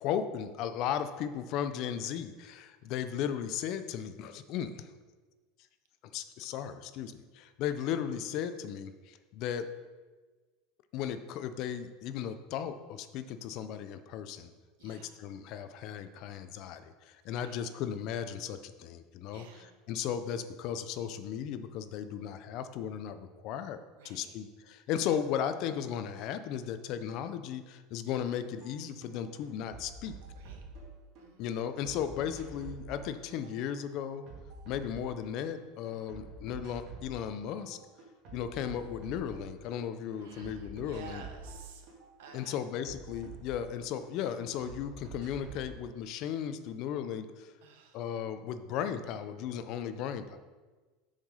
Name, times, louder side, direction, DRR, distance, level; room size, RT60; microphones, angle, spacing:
voice 1, 0.0-4.9 6.1-9.7 10.9-14.5 14.8-30.1 31.4-34.3 34.7-37.8 38.3-41.2 42.3-47.5 47.9-50.4, left 9 dB, 40° left, 11 dB, 0.4 m, -36 dB
voice 2, 14.8-15.2 17.3-17.7 19.3-19.8 22.2-22.4 23.9-24.4 30.3-30.6 31.2-31.7 40.2-41.9 42.2-42.6 47.6-48.0, right 6 dB, 85° right, 3 dB, 1.4 m, -52 dB
sound 1, 28.6-28.7 29.0-31.2 31.6-35.5 35.8-37.3 37.6-39.8 40.1-44.1 44.4-45.7, right 4 dB, 40° right, 1.9 m, -48 dB
7.3 x 4.8 x 5.5 m, 1.3 s
supercardioid pair, 170°, 0 cm